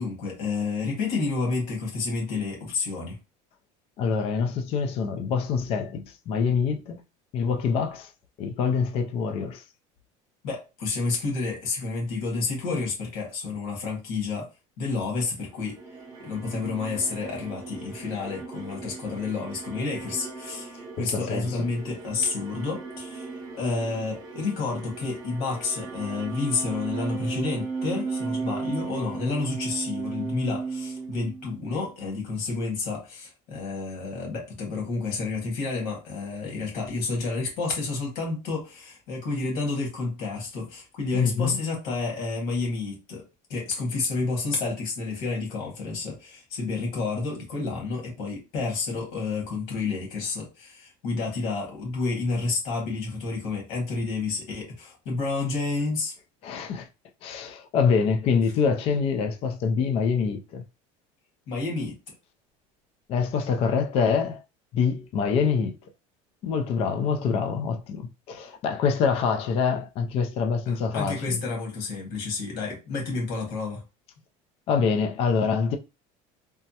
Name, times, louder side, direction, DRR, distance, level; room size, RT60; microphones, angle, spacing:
voice 1, 0.0-3.2 10.4-14.5 14.8-15.8 16.2-43.2 43.5-56.1 61.5-61.9 70.6-73.8, left 3 dB, 65° left, 1.6 m, -30 dB
voice 2, 4.0-7.0 7.3-8.1 8.4-9.6 21.0-21.7 41.1-41.6 56.4-56.9 57.2-60.6 63.1-64.4 64.7-65.7 66.4-71.4 74.7-75.8, left 6 dB, 40° left, 0.4 m, -25 dB
sound 1, 15.5-31.8, right 4 dB, 20° right, 0.7 m, -36 dB
3.4 x 2.0 x 2.8 m
cardioid pair, 165°, 16 cm